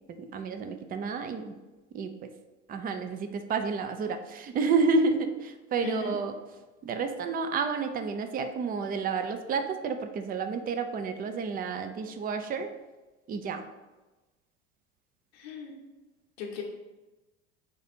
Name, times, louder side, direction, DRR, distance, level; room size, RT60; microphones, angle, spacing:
voice 1, 0.1-1.6 1.9-2.3 2.7-6.3 6.8-12.7 13.3-13.7, right 4 dB, 25° right, 8 dB, 0.5 m, -30 dB
voice 2, 5.8-6.2 15.3-15.7 16.4-16.6, left 6 dB, 60° left, -1 dB, 0.9 m, -37 dB
5.1 x 2.5 x 4.2 m, 1.1 s
figure-of-eight pair, 70°, 35 cm